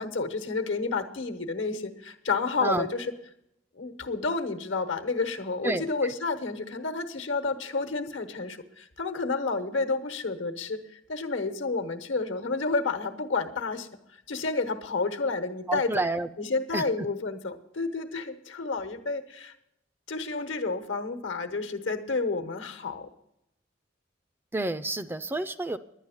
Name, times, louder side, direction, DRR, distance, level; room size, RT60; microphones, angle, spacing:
voice 1, 0.0-3.1 3.8-13.9 14.3-15.9 16.4-19.5 20.1-23.1, left 3 dB, 80° left, 9 dB, 1.1 m, -30 dB
voice 2, 15.7-16.3 16.7-16.8 24.5-25.8, right 2 dB, 10° right, 13 dB, 0.3 m, -29 dB
10.5 x 10.0 x 7.1 m, 0.83 s
head